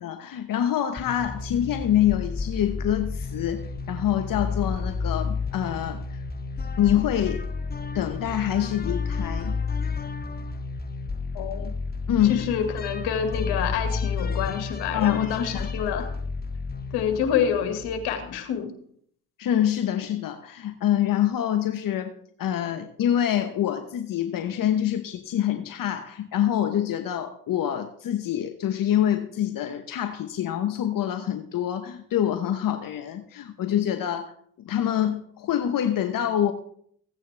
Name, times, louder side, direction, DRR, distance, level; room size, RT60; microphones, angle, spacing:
voice 1, 0.0-6.2 6.8-7.4 7.9-9.6 11.6-11.7 12.1-12.5 14.9-15.7 19.4-22.1 22.4-34.3 34.6-36.5, left 11 dB, 55° left, 8 dB, 1.1 m, -26 dB
sound 1, 1.0-18.3, left 4 dB, 25° left, 0.9 m, -31 dB
voice 2, 11.3-11.7 12.3-16.1 16.9-18.7, left 8 dB, 75° left, 6 dB, 2.0 m, -27 dB
16.0 x 9.1 x 3.4 m, 0.64 s
hypercardioid pair, 60°, 39 cm